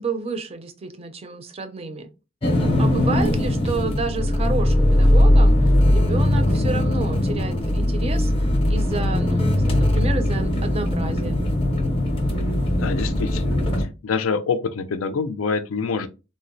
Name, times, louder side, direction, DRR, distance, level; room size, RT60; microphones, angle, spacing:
voice 1, 0.0-2.1 2.8-11.4, right 3 dB, 30° right, 0.4 m, -30 dB
sound 1, 2.4-13.8, left 1 dB, 30° left, 0.6 m, -20 dB
voice 2, 12.7-16.1, left 5 dB, 85° left, 0.4 m, -26 dB
3.7 x 2.0 x 2.5 m
head